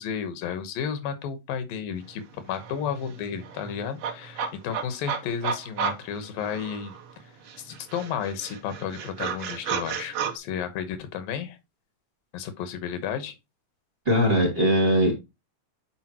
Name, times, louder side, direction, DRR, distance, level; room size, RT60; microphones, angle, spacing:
voice 1, 0.0-6.9 7.2-7.3 7.6-11.6 12.3-13.4, left 8 dB, 85° left, 2.8 m, -32 dB
sound 1, 2.2-2.3 2.5-7.1 7.5-10.3, right 7 dB, 70° right, 1.3 m, -33 dB
voice 2, 14.1-15.1, equal, 20° right, 2.5 m, -20 dB
10.5 x 4.7 x 2.9 m
omnidirectional pair, 3.9 m